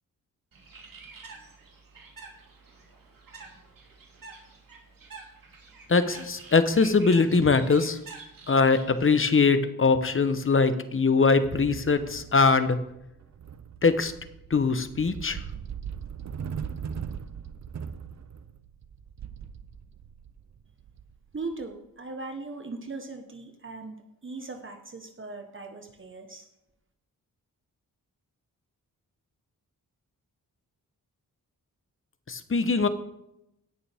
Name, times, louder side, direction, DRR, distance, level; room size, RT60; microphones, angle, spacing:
Bird, 0.5-9.4, right 4 dB, 65° right, 2.7 m, -48 dB
voice 1, 5.9-8.0 8.5-12.8 13.8-14.1 14.5-15.4 32.3-32.9, left 4 dB, 35° left, 11 dB, 1.0 m, -22 dB
sound 1, 11.4-21.6, right 7 dB, 50° right, 0.7 m, -40 dB
voice 2, 21.3-24.0 24.2-26.5, right 3 dB, 35° right, 5 dB, 1.3 m, -39 dB
17.5 x 6.9 x 3.6 m, 0.84 s
cardioid pair, 75°, 36 cm